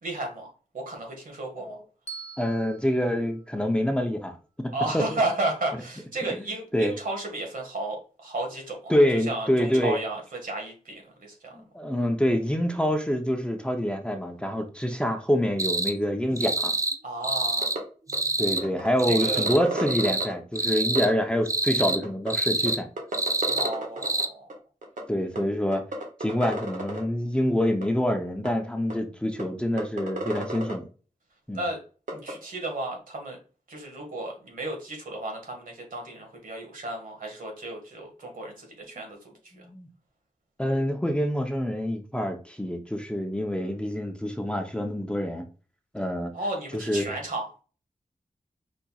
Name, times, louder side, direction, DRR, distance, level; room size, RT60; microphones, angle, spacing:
voice 1, 0.0-1.8 4.7-11.6 17.0-17.8 19.1-19.4 23.5-24.5 31.5-31.8 32.1-33.4 33.7-39.2 39.5-39.7 46.3-47.6, right 2 dB, 85° right, 1 dB, 1.7 m, -33 dB
Bell, 2.1-4.3, right 4 dB, 55° left, 1.0 m, -45 dB
voice 2, 2.4-4.4 4.6-5.2 6.4-6.9 8.9-10.0 11.5-16.7 18.4-22.9 25.1-25.8 26.2-30.9 31.5-31.6 39.5-39.9 40.6-45.5 45.9-46.3 46.7-47.0, equal, 5° left, 4 dB, 0.7 m, -26 dB
sound 1, 15.6-15.9 16.4-17.0 17.2-17.8 18.1-18.6 19.0-19.6 19.9-20.3 20.5-21.1 21.5-22.0 22.3-22.8 23.1-23.7 24.0-24.3, right 3 dB, 25° right, 0.4 m, -27 dB
sound 2, 17.6-17.8 18.1-18.2 18.6-20.3 21.0-21.1 21.8-22.3 22.7-22.8 23.0-24.2 24.5-24.6 24.8-25.0 25.4-25.5 25.7-27.0 27.8-27.9 28.5-28.6 28.9-29.0 29.4-29.5 29.8-30.7 32.1-32.3, right 2 dB, 70° right, 1.4 m, -32 dB
5.2 x 4.3 x 2.3 m, 0.37 s
wide cardioid pair, 115°, 14 cm